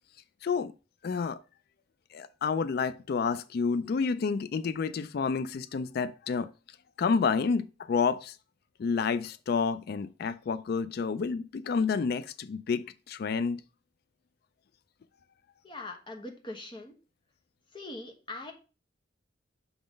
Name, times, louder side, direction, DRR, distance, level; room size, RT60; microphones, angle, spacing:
voice 1, 0.4-0.7 1.0-1.4 2.1-6.5 7.0-8.4 8.8-13.6, left 5 dB, 55° left, 0.3 m, -29 dB
voice 2, 15.6-16.9 17.7-18.5, left 2 dB, 25° left, 1.2 m, -41 dB
5.9 x 3.8 x 5.1 m
head